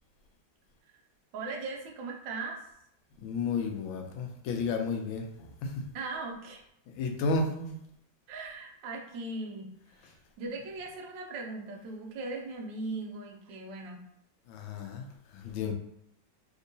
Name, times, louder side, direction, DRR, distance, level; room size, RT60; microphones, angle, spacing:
voice 1, 1.3-2.6 5.9-6.6 8.3-9.7 10.0-14.0, right 3 dB, 70° right, 0 dB, 1.3 m, -39 dB
voice 2, 3.2-5.7 6.9-7.8 14.5-15.0 15.3-15.7, left 3 dB, 80° left, 3 dB, 1.3 m, -32 dB
3.6 x 2.8 x 2.6 m, 0.76 s
omnidirectional pair, 2.2 m